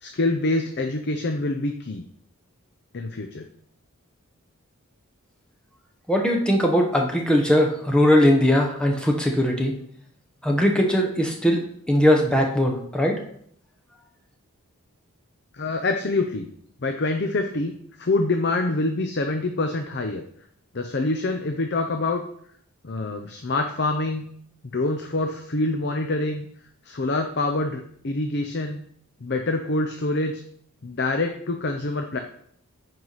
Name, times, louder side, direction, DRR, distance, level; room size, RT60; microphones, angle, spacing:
voice 1, 0.0-2.0 2.9-3.5 15.5-16.5 16.8-20.2 20.7-22.2 22.8-24.3 24.7-26.5 26.8-28.8 29.2-30.4 30.8-32.2, left 2 dB, 50° left, 4 dB, 0.6 m, -26 dB
voice 2, 6.1-9.7 10.4-13.2, equal, 5° left, 1 dB, 1.1 m, -20 dB
9.6 x 4.7 x 4.1 m, 0.65 s
head